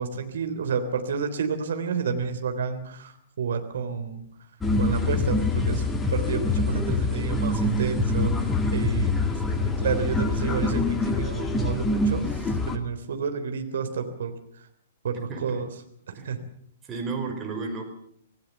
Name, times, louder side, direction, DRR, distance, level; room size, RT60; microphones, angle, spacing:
voice 1, 0.0-4.3 4.8-8.3 8.7-9.1 9.6-14.3 15.0-15.7 16.1-16.4, right 6 dB, 55° right, 7 dB, 3.5 m, -30 dB
sound 1, 4.6-12.8, left 2 dB, 10° left, 2.1 m, -25 dB
voice 2, 15.3-15.7 16.1-16.3 16.9-17.8, right 4 dB, 20° right, 3 dB, 5.4 m, -32 dB
26.0 x 17.5 x 7.1 m, 0.67 s
figure-of-eight pair, 110°, 0 cm